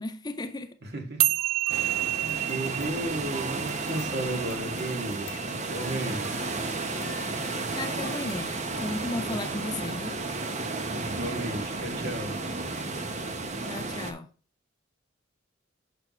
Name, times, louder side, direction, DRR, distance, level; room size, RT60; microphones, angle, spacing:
voice 1, 0.0-0.8 7.8-10.2 13.7-14.3, left 2 dB, 20° left, 0.5 m, -35 dB
voice 2, 0.8-1.4 1.7-6.3 11.1-12.4, right 1 dB, 55° right, 1.8 m, -34 dB
sound 1, 1.2-7.8, right 15 dB, 75° right, 0.4 m, -31 dB
sound 2, 1.4-9.1 9.8-9.9 10.3-10.4 10.8-10.9, left 4 dB, 85° left, 1.0 m, -49 dB
sound 3, 1.7-14.1, right 3 dB, 35° right, 0.9 m, -33 dB
6.7 x 6.0 x 3.0 m
head